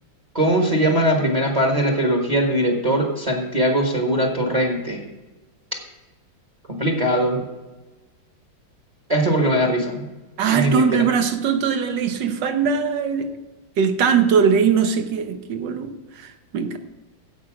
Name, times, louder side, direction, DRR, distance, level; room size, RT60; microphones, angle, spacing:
voice 1, 0.3-5.0 6.7-7.4 9.1-10.0 10.5-11.1, right 1 dB, 20° right, 1 dB, 1.4 m, -20 dB
voice 2, 10.4-13.3 13.8-16.8, right 7 dB, 65° right, 8 dB, 1.5 m, -21 dB
16.0 x 5.6 x 5.0 m, 1.1 s
omnidirectional pair, 2.1 m